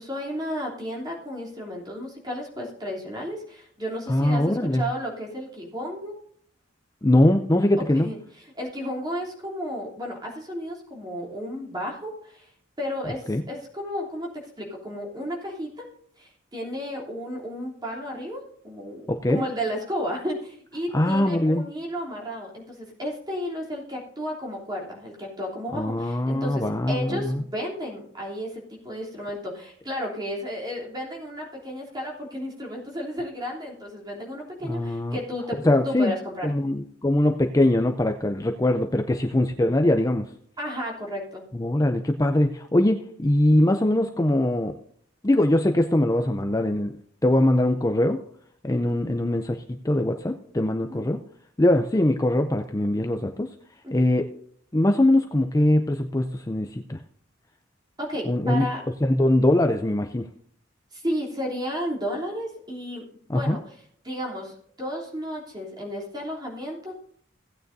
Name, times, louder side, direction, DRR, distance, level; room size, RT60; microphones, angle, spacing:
voice 1, 0.0-6.1 7.9-8.2 8.6-12.5 12.8-14.3 14.6-15.7 16.2-36.5 40.6-41.4 50.8-51.0 53.8-54.0 58.0-58.8 60.9-63.0 63.3-63.7 64.0-67.0, equal, 20° right, -2 dB, 3.2 m, -33 dB
voice 2, 4.1-4.9 7.0-8.1 13.3-13.4 19.1-19.4 20.9-21.6 25.7-27.4 34.6-35.2 35.6-36.1 36.4-40.3 41.5-44.7 45.2-46.9 47.2-48.2 48.6-51.2 51.6-53.5 53.9-54.3 54.7-57.0 58.2-58.7 59.0-60.3 63.3-63.6, left 1 dB, 15° left, 6 dB, 0.5 m, -22 dB
17.0 x 9.1 x 2.7 m, 0.63 s
head